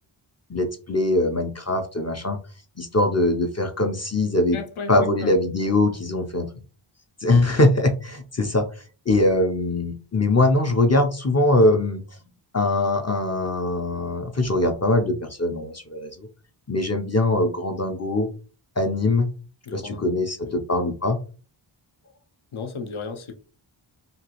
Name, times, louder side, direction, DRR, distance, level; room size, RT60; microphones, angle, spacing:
voice 1, 0.5-2.4 2.8-4.6 4.9-6.5 7.2-12.0 12.5-16.3 16.7-18.3 18.8-19.3 19.7-21.2, left 2 dB, 35° left, 0.5 m, -22 dB
voice 2, 4.5-5.3 12.2-12.3 19.7-20.6 22.5-23.3, left 4 dB, 75° left, 0.7 m, -35 dB
2.9 x 2.3 x 2.9 m
wide cardioid pair, 65°, 50 cm